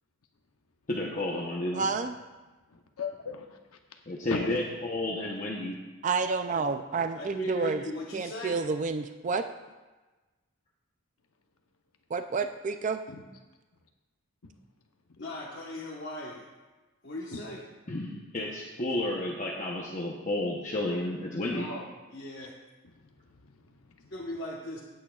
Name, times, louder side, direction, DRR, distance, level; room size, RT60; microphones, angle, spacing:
voice 1, 0.9-1.9 4.1-5.7 17.9-21.7, left 1 dB, 35° left, -3 dB, 0.9 m, -31 dB
voice 2, 1.7-2.1 6.0-7.8 8.1-9.5 12.1-13.0, right 4 dB, 35° right, 8 dB, 0.3 m, -29 dB
voice 3, 2.7-4.0 4.3-4.5 13.1-13.2 14.4-14.5 17.3-17.4 22.8-24.1, left 4 dB, 85° left, 4 dB, 0.8 m, -40 dB
voice 4, 7.1-8.6 15.2-16.5 17.0-17.6 21.5-22.6 24.1-24.8, left 1 dB, 50° left, -4 dB, 1.3 m, -38 dB
16.5 x 8.6 x 2.4 m, 1.2 s
head